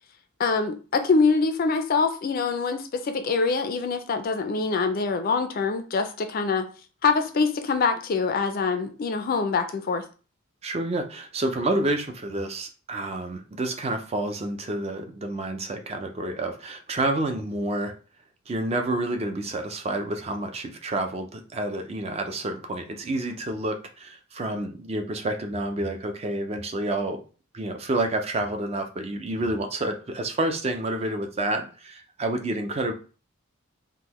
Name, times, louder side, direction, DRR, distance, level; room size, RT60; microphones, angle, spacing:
voice 1, 0.4-6.7 7.0-10.0, left 4 dB, 45° left, 0.4 m, -24 dB
voice 2, 10.6-17.9 18.5-27.2 27.5-32.9, right 2 dB, 30° right, 0.4 m, -29 dB
3.6 x 2.1 x 3.0 m
head